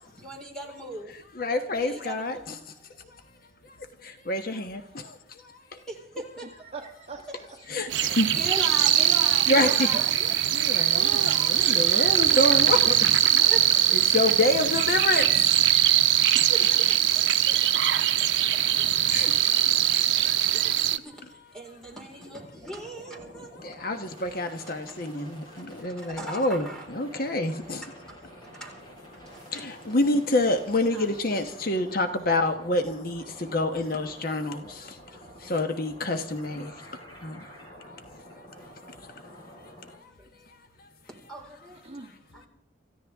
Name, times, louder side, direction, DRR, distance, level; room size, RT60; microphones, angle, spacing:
voice 1, 0.2-1.1 1.8-2.6 5.9-6.6 7.8-7.9 8.3-10.3 10.9-11.8 13.4-13.8 16.5-17.0 17.4-17.6 20.5-23.5 24.7-25.1 25.7-26.9 27.6-28.2 28.6-28.8 29.1-29.6 30.8-31.1 32.8-32.9 34.7-34.8 36.1-36.2 39.8-40.3 41.3-41.8 42.3-42.5, right 2 dB, 5° left, 4.4 m, -40 dB
voice 2, 1.3-2.6 3.1-3.2 3.6-5.8 7.7-8.3 9.5-9.9 10.5-13.0 13.3-13.4 13.9-15.6 16.3-16.5 19.1-19.7 23.6-27.8 29.5-36.9 37.2-37.5 37.9-38.0 38.6-39.2 39.9-40.1 40.8-40.9, left 2 dB, 55° left, 1.1 m, -28 dB
voice 3, 6.7-7.5 9.5-10.4 12.3-13.0 13.4-13.6 41.8-42.1, right 4 dB, 35° right, 1.6 m, -41 dB
sound 1, 7.9-21.0, right 12 dB, 85° right, 0.7 m, -22 dB
sound 2, 22.2-40.0, equal, 25° left, 5.4 m, -48 dB
27.5 x 14.5 x 3.6 m
head